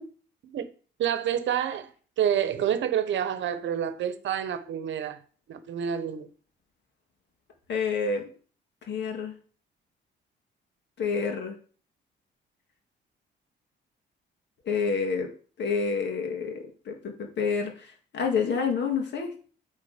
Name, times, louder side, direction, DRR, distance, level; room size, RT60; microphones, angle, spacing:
voice 1, 1.0-1.9 2.2-5.2 5.5-6.3, right 9 dB, 70° right, 0.9 m, -28 dB
voice 2, 7.7-8.3 8.9-9.3 11.0-11.5 14.7-15.3 15.6-17.9 18.1-19.3, left 5 dB, 60° left, 1.9 m, -28 dB
8.6 x 3.7 x 5.0 m
cardioid pair, 90°, 20 cm